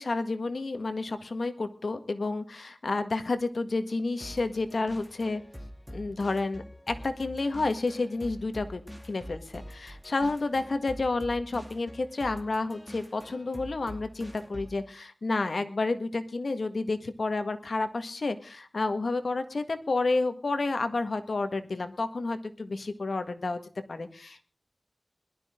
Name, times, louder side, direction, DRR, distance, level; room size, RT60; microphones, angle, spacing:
voice 1, 0.0-5.4 5.9-23.6 23.9-24.5, left 3 dB, 85° left, 9 dB, 1.7 m, -30 dB
sound 1, 4.2-14.9, equal, 5° left, 2.4 m, -45 dB
21.5 x 12.5 x 3.8 m, 0.37 s
wide cardioid pair, 65°, 0 cm